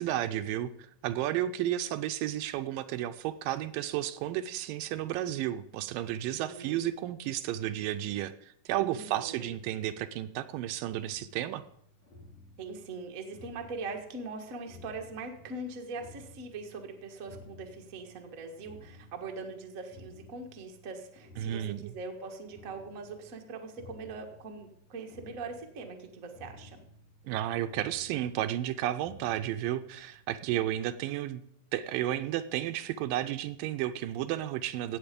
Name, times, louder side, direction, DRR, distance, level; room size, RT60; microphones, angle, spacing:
voice 1, 0.0-11.6 21.4-21.9 27.2-31.4 31.7-35.0, right 12 dB, 85° right, 11 dB, 2.3 m, -32 dB
voice 2, 6.4-6.8 8.9-9.5 12.6-26.8, right 3 dB, 45° right, 3 dB, 1.1 m, -42 dB
sound 1, 11.0-30.2, left 1 dB, 45° left, 3.8 m, -55 dB
17.0 x 7.9 x 5.2 m, 0.67 s
omnidirectional pair, 4.0 m